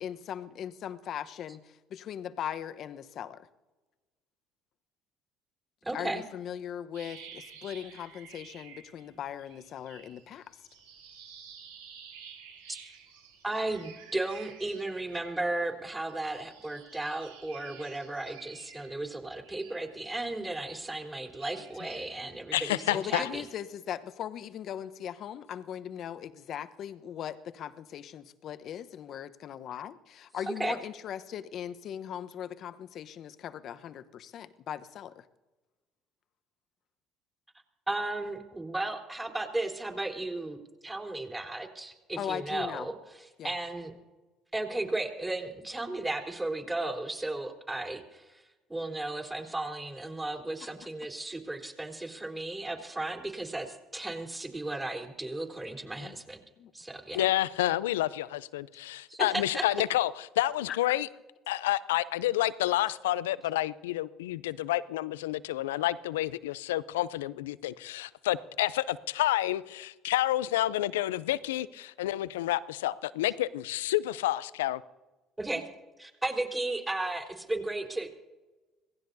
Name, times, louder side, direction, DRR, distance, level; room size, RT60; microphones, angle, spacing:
voice 1, 0.0-3.4 5.9-10.6 21.6-21.9 22.9-35.3 42.2-42.9 43.4-43.5 56.0-56.2 56.6-56.7 60.7-61.0, left 9 dB, 55° left, 1.0 m, -39 dB
voice 2, 5.8-6.2 13.4-23.4 30.6-30.8 37.9-43.9 44.5-48.4 48.7-56.4 56.7-57.2 59.1-59.6 75.4-75.6 76.0-78.1, right 2 dB, 15° right, 3.8 m, -35 dB
sound 1, 6.9-9.1 9.4-15.7 16.1-20.5 21.0-22.2, right 7 dB, 85° right, 5.1 m, -52 dB
voice 3, 22.5-23.3 57.1-61.1 61.5-74.8, left 14 dB, 85° left, 0.5 m, -29 dB
26.5 x 18.0 x 2.7 m
hypercardioid pair, 60°, 0 cm